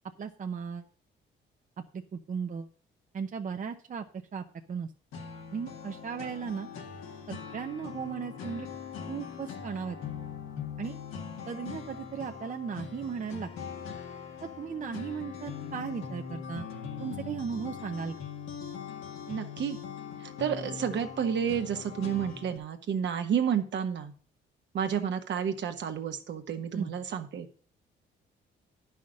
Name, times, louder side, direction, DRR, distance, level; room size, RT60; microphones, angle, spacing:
voice 1, 0.2-0.9 1.9-2.7 3.1-4.0 4.3-4.9 5.5-6.7 7.3-8.7 9.1-10.0 10.8-11.0 11.5-13.5 14.6-16.7 17.0-18.1 26.7-26.9, right 6 dB, 40° right, 5 dB, 0.7 m, -36 dB
sound 1, 5.1-22.6, left 7 dB, 85° left, 1.9 m, -41 dB
voice 2, 19.3-19.8 20.4-24.1 24.7-27.5, right 8 dB, 65° right, 6 dB, 1.3 m, -30 dB
10.0 x 5.7 x 6.3 m, 0.43 s
cardioid pair, 90°, 20 cm